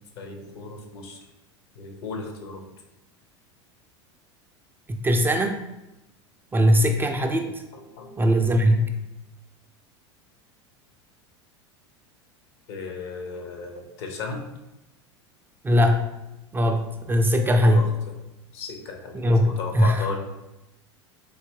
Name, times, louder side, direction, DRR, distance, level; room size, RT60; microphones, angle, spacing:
voice 1, 0.1-1.2 1.7-2.7 7.7-8.6 12.7-14.4 17.6-17.9 18.5-20.2, left 4 dB, 60° left, 3 dB, 0.8 m, -35 dB
voice 2, 4.9-5.6 6.5-7.6 8.2-9.0 15.6-16.1 16.5-17.9 19.1-20.1, equal, 15° right, 4 dB, 0.3 m, -20 dB
4.0 x 2.8 x 3.2 m, 0.95 s
figure-of-eight pair, 80°, 15 cm